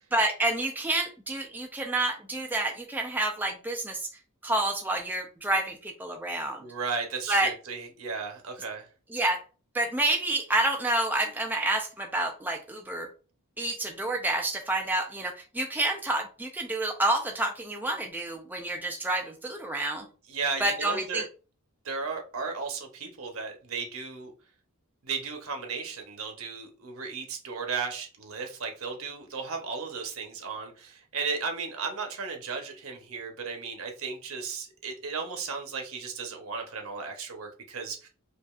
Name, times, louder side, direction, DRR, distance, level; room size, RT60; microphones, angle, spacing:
voice 1, 0.1-4.1 4.4-6.6 7.3-7.5 9.1-9.4 9.7-13.1 13.6-20.1 20.6-21.2, right 2 dB, 10° right, 2 dB, 0.4 m, -28 dB
voice 2, 6.6-8.9 20.3-21.3 21.8-24.3 25.0-38.1, right 5 dB, 70° right, 3 dB, 0.9 m, -35 dB
5.1 x 2.5 x 2.4 m, 0.36 s
head